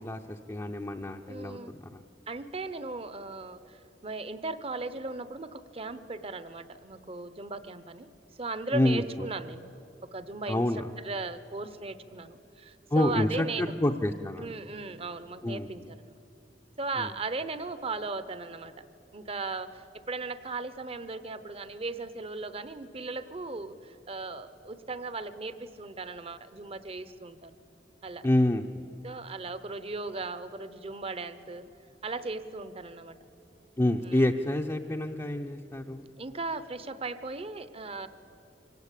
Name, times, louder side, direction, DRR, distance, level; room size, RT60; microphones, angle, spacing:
voice 1, 0.0-2.0 8.7-9.3 10.5-10.9 12.9-14.4 15.4-15.9 17.0-17.1 28.2-28.9 33.8-36.1, left 1 dB, 20° left, 1 dB, 0.6 m, -28 dB
voice 2, 1.3-1.7 2.3-8.1 8.4-9.7 10.1-13.7 14.4-16.2 16.8-18.7 19.1-27.6 28.0-28.3 29.0-31.7 32.0-33.2 34.0-34.3 36.2-38.1, right 3 dB, 35° right, 13 dB, 0.8 m, -37 dB
24.5 x 17.5 x 8.3 m, 2.8 s
head